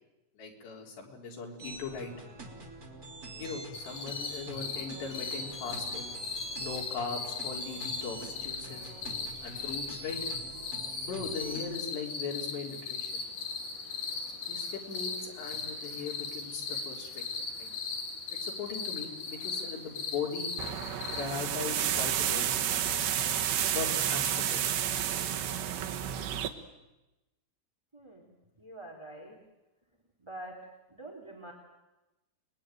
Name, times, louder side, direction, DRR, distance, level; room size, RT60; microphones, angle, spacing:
voice 1, 0.4-2.1 3.4-6.2 6.6-8.9 9.4-10.2 11.0-13.2 14.5-17.2 17.6-17.7 18.3-20.5 21.1-23.0 23.7-24.8, left 5 dB, 85° left, 0 dB, 6.2 m, -39 dB
sound 1, 1.6-11.8, right 2 dB, 25° right, 3.2 m, -45 dB
sound 2, 3.7-21.2, left 4 dB, 65° left, 6.2 m, -38 dB
sound 3, 20.6-26.5, right 10 dB, 85° right, 3.6 m, -30 dB
voice 2, 27.9-29.4 30.2-30.6 30.9-31.5, right 1 dB, 10° right, 1 dB, 2.6 m, -46 dB
29.5 x 21.0 x 9.2 m, 1.0 s
omnidirectional pair, 4.8 m